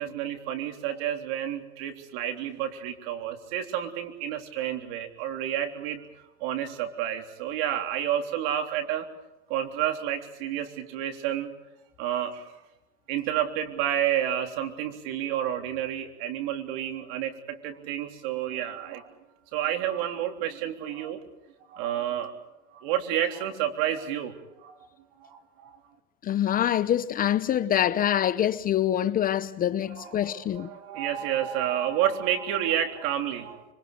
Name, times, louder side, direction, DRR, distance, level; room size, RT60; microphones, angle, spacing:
voice 1, 0.0-6.0 6.4-9.1 9.5-11.5 12.0-12.4 13.1-19.1 19.5-21.2 21.7-22.3 22.7-24.8 25.2-25.7 29.9-33.7, right 10 dB, 60° right, 3.5 m, -30 dB
voice 2, 26.2-30.7, left 11 dB, 25° left, 0.7 m, -25 dB
26.0 x 24.5 x 5.2 m
supercardioid pair, 135°, 32 cm